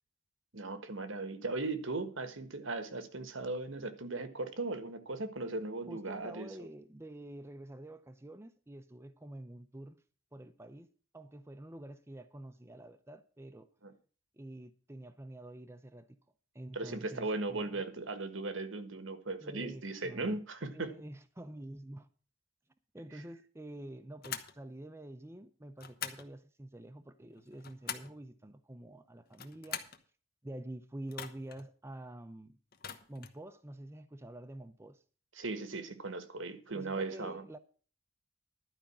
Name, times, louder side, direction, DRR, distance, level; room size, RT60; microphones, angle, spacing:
voice 1, 0.5-6.7 13.8-13.9 16.7-21.0 35.4-37.4, right 3 dB, 80° right, 1.5 m, -38 dB
voice 2, 5.9-10.0 10.3-10.9 11.1-13.7 14.3-16.2 16.5-17.8 19.4-20.4 20.7-22.1 22.9-29.8 30.4-32.6 33.1-35.0 36.7-37.6, right 1 dB, 15° right, 0.7 m, -48 dB
sound 1, 24.2-24.6 25.8-26.3 27.3-28.2 29.3-30.0 31.1-31.6 32.7-33.4, left 8 dB, 50° left, 1.2 m, -43 dB
12.0 x 5.2 x 8.6 m
head